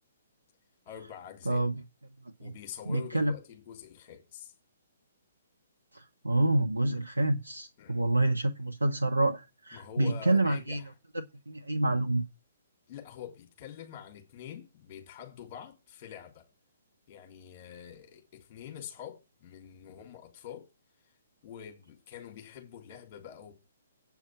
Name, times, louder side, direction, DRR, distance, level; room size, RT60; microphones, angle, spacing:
voice 1, 0.8-1.6 2.4-4.5 7.8-8.0 9.7-10.9 12.9-16.4 17.1-20.6 21.4-23.5, left 9 dB, 35° left, 3.5 m, -46 dB
voice 2, 2.9-3.3 5.9-10.8 11.5-12.2, right 2 dB, 85° right, 0.9 m, -27 dB
8.7 x 5.9 x 6.1 m
figure-of-eight pair, 125°, 0 cm